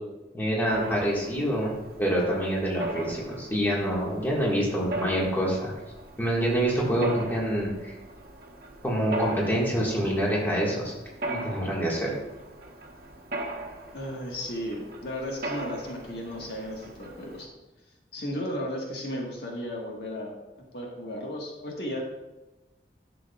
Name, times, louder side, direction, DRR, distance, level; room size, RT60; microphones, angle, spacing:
voice 1, 0.3-1.7 2.0-5.7 6.2-7.9 8.8-10.9 11.3-12.1, equal, 10° left, -4 dB, 1.7 m, -26 dB
Mechanisms, 0.7-17.5, right 1 dB, 55° right, 1.1 m, -39 dB
voice 2, 13.9-17.5 18.1-20.3 20.7-22.0, equal, 70° left, -1 dB, 1.6 m, -34 dB
11.0 x 7.0 x 2.4 m, 1.1 s
head